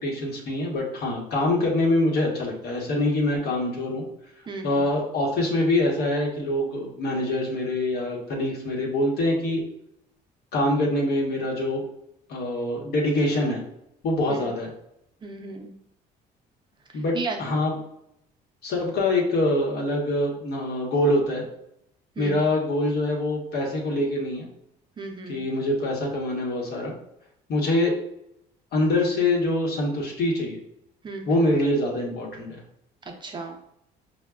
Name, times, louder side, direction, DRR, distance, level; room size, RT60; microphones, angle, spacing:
voice 1, 0.0-4.0 4.6-9.6 10.5-11.8 12.3-13.6 14.0-14.7 16.9-17.8 18.6-21.4 22.2-24.5 25.3-26.9 27.5-27.9 28.7-30.6 31.3-32.6, left 1 dB, 70° left, -1 dB, 1.1 m, -24 dB
voice 2, 4.5-4.8 14.3-14.4 15.2-15.8 17.1-17.4 22.2-22.4 25.0-25.4 31.0-31.4 33.2-33.6, right 4 dB, 25° right, 3 dB, 0.5 m, -34 dB
4.9 x 2.2 x 2.3 m, 0.76 s
cardioid pair, 110°, 17 cm